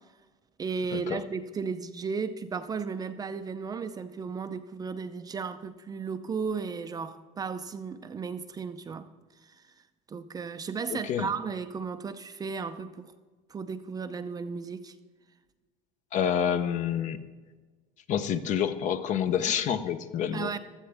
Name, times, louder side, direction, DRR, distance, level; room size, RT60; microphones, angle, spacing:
voice 1, 0.6-9.1 9.4-9.6 10.1-13.1 13.5-14.9 20.3-20.6, right 5 dB, 20° right, 0.5 m, -35 dB
voice 2, 10.9-11.3 16.1-17.2 18.1-20.5, left 9 dB, 45° left, 0.8 m, -28 dB
15.5 x 13.0 x 3.5 m
cardioid pair, 135°, 18 cm